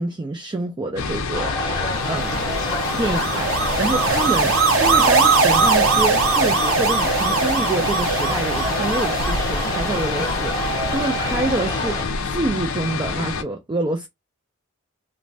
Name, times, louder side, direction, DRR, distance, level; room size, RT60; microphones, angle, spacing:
voice 1, 0.0-1.5 1.8-2.4 2.9-14.1, right 2 dB, 20° right, 0.3 m, -27 dB
sound 1, 1.0-13.4, left 4 dB, 80° left, 0.5 m, -27 dB
sound 2, 1.3-12.1, equal, 20° left, 0.7 m, -28 dB
sound 3, 2.0-11.3, right 5 dB, 75° right, 0.7 m, -22 dB
2.5 x 2.1 x 3.1 m
head